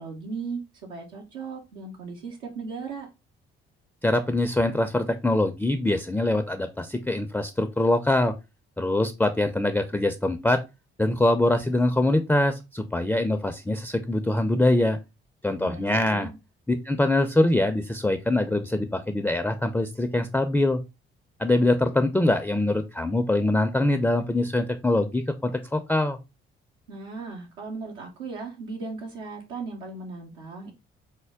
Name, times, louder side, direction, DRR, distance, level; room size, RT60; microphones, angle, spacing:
voice 1, 0.0-3.1 15.6-16.3 26.9-30.7, right 4 dB, 85° right, 0.7 m, -37 dB
voice 2, 4.0-8.3 8.8-10.6 11.0-15.0 15.4-16.3 16.7-20.8 21.4-26.2, left 1 dB, 5° left, 0.4 m, -23 dB
4.5 x 2.1 x 3.4 m
hypercardioid pair, 45°, 29 cm